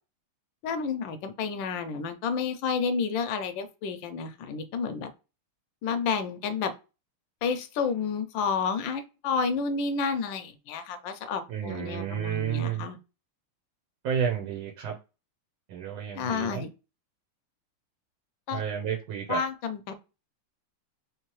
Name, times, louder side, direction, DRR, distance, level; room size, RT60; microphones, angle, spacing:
voice 1, 0.6-5.1 5.8-6.7 7.4-13.0 16.1-16.7 18.5-18.6 19.3-20.0, left 5 dB, 75° left, 1.2 m, -30 dB
voice 2, 11.5-12.9 14.0-14.9 15.7-16.6 18.5-19.4, right 8 dB, 70° right, 1.6 m, -31 dB
3.7 x 3.3 x 3.0 m
omnidirectional pair, 2.4 m